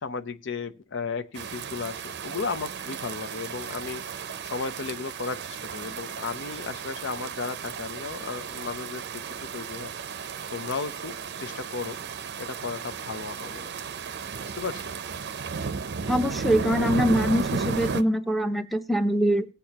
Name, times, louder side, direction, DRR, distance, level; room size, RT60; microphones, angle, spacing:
voice 1, 0.0-4.0 4.5-9.9 10.5-12.0 12.4-13.7 14.4-14.8, left 4 dB, 65° left, 11 dB, 0.6 m, -34 dB
sound 1, 1.4-18.0, right 5 dB, 60° right, 0.6 m, -34 dB
voice 2, 16.1-19.5, equal, ahead, 8 dB, 0.6 m, -24 dB
18.5 x 8.4 x 2.9 m, 0.32 s
head